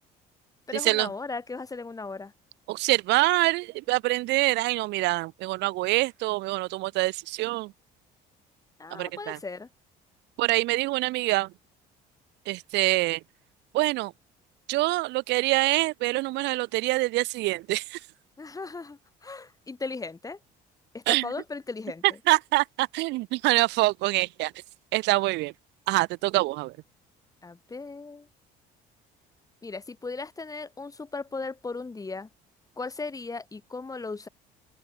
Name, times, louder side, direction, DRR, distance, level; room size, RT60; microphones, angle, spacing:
voice 1, 0.7-2.3 8.8-9.7 18.4-20.4 20.9-22.2 27.4-28.3 29.6-32.3 32.8-34.3, left 3 dB, 20° left, 1.6 m, -37 dB
voice 2, 2.7-7.7 8.9-9.4 10.4-11.5 12.5-13.2 13.7-14.1 14.7-18.0 21.1-21.2 22.3-24.5 24.9-25.5 25.9-26.7, right 20 dB, 75° right, 0.6 m, -25 dB
open air
supercardioid pair, 90°, 18 cm